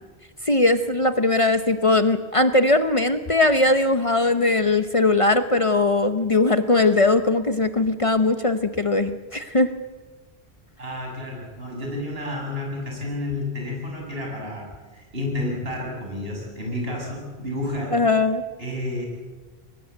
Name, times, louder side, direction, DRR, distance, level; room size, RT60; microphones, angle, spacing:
voice 1, 0.4-9.7 17.9-18.4, left 2 dB, 35° left, 10 dB, 0.8 m, -20 dB
voice 2, 10.8-18.0 18.6-19.0, left 1 dB, 70° right, -1 dB, 6.8 m, -30 dB
23.0 x 18.5 x 8.3 m, 1.4 s
omnidirectional pair, 1.0 m